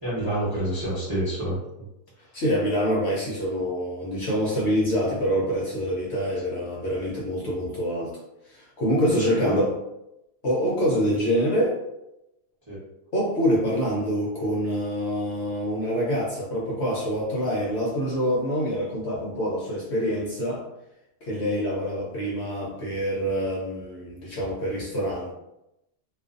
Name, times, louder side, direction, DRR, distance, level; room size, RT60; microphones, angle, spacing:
voice 1, 0.0-1.6 9.0-9.6 12.7-12.8, right 1 dB, 15° right, -9 dB, 0.8 m, -28 dB
voice 2, 2.3-8.2 8.5-9.7 10.4-11.8 13.1-20.6 21.2-25.3, equal, 65° left, -4 dB, 0.7 m, -26 dB
2.4 x 2.4 x 2.5 m, 0.87 s
omnidirectional pair, 1.7 m